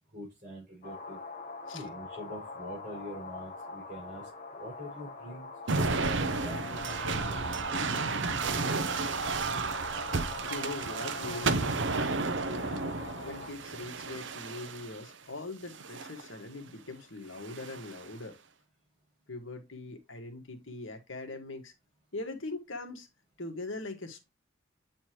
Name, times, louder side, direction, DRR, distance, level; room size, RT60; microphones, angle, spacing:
voice 1, 0.1-1.2 1.7-5.5 6.0-7.4 7.7-9.0, equal, 40° right, 5.1 m, -45 dB
sound 1, 0.8-13.5, left 3 dB, 40° left, 1.3 m, -43 dB
sound 2, 5.7-15.0 15.7-16.3 17.4-18.0, right 4 dB, 65° right, 0.8 m, -32 dB
voice 2, 10.5-12.9 13.2-18.4 19.3-21.7 22.1-23.1 23.4-24.3, left 2 dB, 75° left, 1.7 m, -41 dB
9.0 x 4.3 x 3.1 m
head